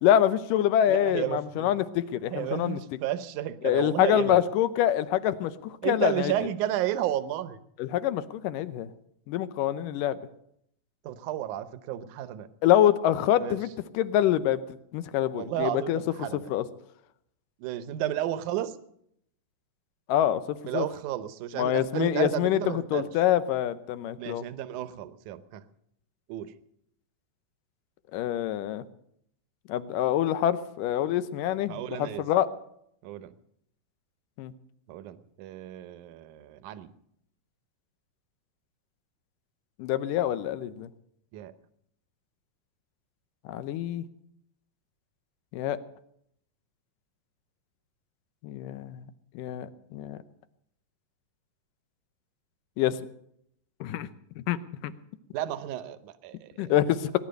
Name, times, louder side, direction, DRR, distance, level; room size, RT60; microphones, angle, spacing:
voice 1, 0.0-2.8 3.6-6.3 7.8-8.9 9.3-10.2 12.6-16.0 16.5-16.6 20.1-20.9 21.6-24.4 28.1-28.8 29.7-32.5 34.4-34.5 39.8-40.9 43.5-44.0 45.5-45.8 48.4-49.0 49.4-50.2 52.8-53.0 53.8-54.1 54.5-54.6 54.8-54.9 56.6-57.2, left 11 dB, 85° left, 13 dB, 2.4 m, -26 dB
voice 2, 0.9-1.7 2.3-4.4 5.8-7.6 11.1-12.5 13.4-13.6 15.4-16.5 17.6-18.7 20.7-23.1 24.2-25.6 26.3-26.5 31.7-32.2 33.0-33.3 34.9-36.9 41.3-41.5 55.3-56.7, right 12 dB, 75° right, 13 dB, 2.2 m, -32 dB
19.5 x 11.0 x 6.6 m, 0.72 s
omnidirectional pair, 3.8 m